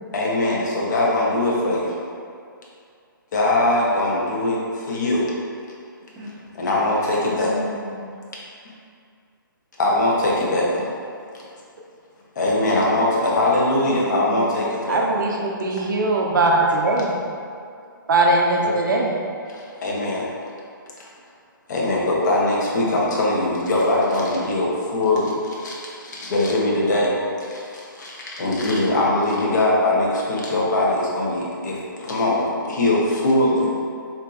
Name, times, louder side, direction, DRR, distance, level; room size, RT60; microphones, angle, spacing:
voice 1, 0.1-1.9 3.3-5.3 6.6-7.5 8.6-8.7 9.8-10.7 12.4-15.0 18.6-18.7 19.5-20.2 21.7-27.1 27.4-33.7, left 2 dB, 55° left, -4 dB, 0.8 m, -21 dB
voice 2, 6.1-7.0 7.4-8.1, left 1 dB, 15° right, -7 dB, 0.5 m, -37 dB
voice 3, 13.9-14.5 14.9-17.2 18.1-19.1, right 2 dB, 60° right, -1 dB, 0.5 m, -21 dB
3.9 x 2.7 x 2.3 m, 2.4 s
hypercardioid pair, 150°, 12 cm